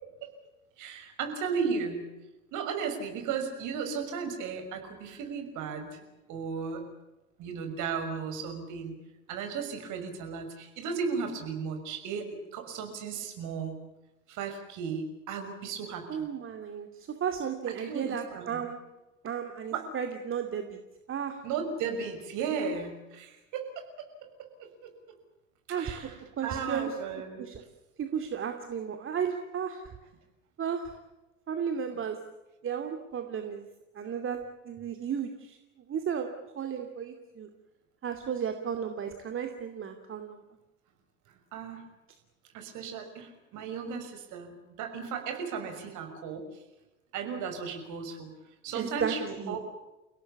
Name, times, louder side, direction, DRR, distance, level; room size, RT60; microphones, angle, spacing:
voice 1, 0.8-2.0 2.5-6.0 6.3-6.9 7.4-8.9 9.3-13.8 14.3-16.3 17.7-18.6 19.7-19.8 21.4-23.7 24.2-24.9 25.8-26.1 26.4-27.4 41.5-41.8 42.5-46.5 47.1-48.3 48.6-49.6, right 6 dB, 50° right, 6 dB, 6.2 m, -35 dB
voice 2, 16.1-18.8 19.2-20.8 21.1-21.4 25.7-26.1 26.4-26.9 27.4-27.6 28.0-29.9 30.6-31.0 31.5-32.2 32.6-33.7 33.9-35.6 35.9-37.5 38.0-40.4 48.7-49.6, right 7 dB, 30° right, 6 dB, 2.6 m, -34 dB
30.0 x 17.5 x 8.6 m, 1.0 s
figure-of-eight pair, 70°, 38 cm